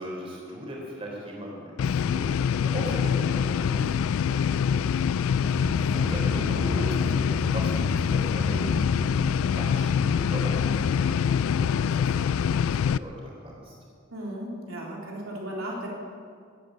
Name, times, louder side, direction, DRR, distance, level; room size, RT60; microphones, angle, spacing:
voice 1, 0.0-4.8 5.8-9.3 9.5-13.7, equal, 30° right, -2 dB, 3.7 m, -38 dB
sound 1, 1.8-13.0, left 7 dB, 80° left, 0.3 m, -25 dB
voice 2, 4.7-5.1 5.8-6.0 8.5-8.8 14.1-15.9, right 1 dB, 80° right, -3 dB, 3.5 m, -36 dB
sound 2, 5.4-11.3, left 1 dB, 10° left, 0.5 m, -34 dB
16.0 x 9.3 x 8.7 m, 2.2 s
head